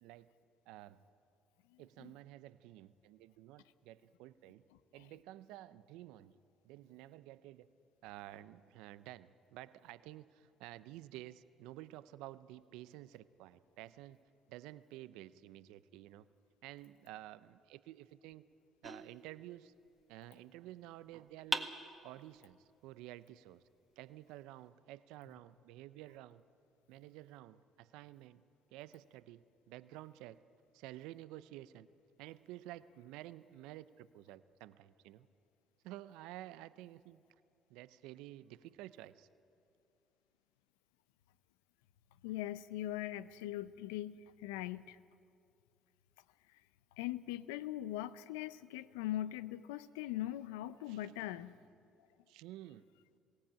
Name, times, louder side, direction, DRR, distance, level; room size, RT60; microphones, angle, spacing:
voice 1, 0.7-1.0 1.8-4.6 4.9-6.3 6.6-7.7 8.0-14.2 14.5-16.3 16.6-18.4 18.8-19.7 20.1-21.7 22.0-23.6 24.0-26.4 26.9-28.4 28.7-30.4 30.7-31.9 32.2-35.3 35.8-37.2 37.7-39.3 50.9-51.0 52.3-52.9, right 15 dB, 80° right, 15 dB, 0.5 m, -51 dB
voice 2, 1.7-2.1 4.9-5.1 42.2-45.0 47.0-51.6, left 14 dB, 90° left, 16 dB, 0.5 m, -41 dB
sound 1, 18.8-20.0 21.5-22.5, right 1 dB, 10° right, 1.6 m, -41 dB
21.0 x 17.0 x 8.7 m, 2.5 s
supercardioid pair, 65°, 0 cm